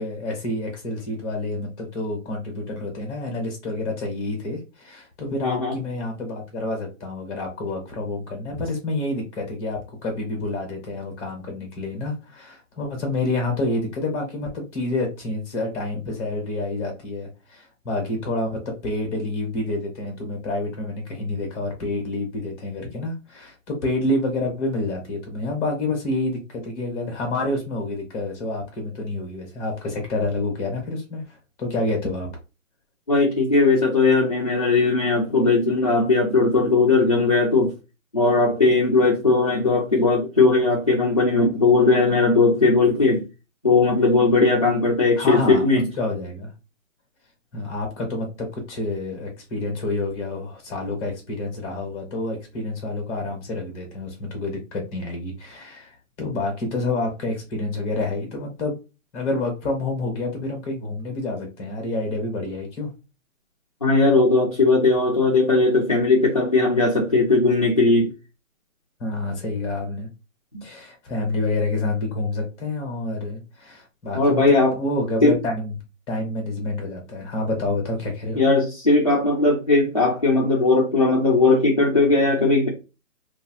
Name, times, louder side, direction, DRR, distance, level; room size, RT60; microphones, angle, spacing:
voice 1, 0.0-32.3 45.1-45.6 45.9-46.5 47.5-58.8 59.1-62.9 69.0-70.1 70.6-75.7 76.1-78.4, left 2 dB, 10° left, 0.7 m, -28 dB
voice 2, 5.4-5.8 33.1-37.7 38.1-43.2 43.6-45.9 63.8-68.1 70.5-70.6 74.1-74.7 75.2-75.4 78.4-82.7, left 3 dB, 30° left, 0.4 m, -18 dB
2.7 x 2.3 x 2.8 m
hypercardioid pair, 160°, 40 cm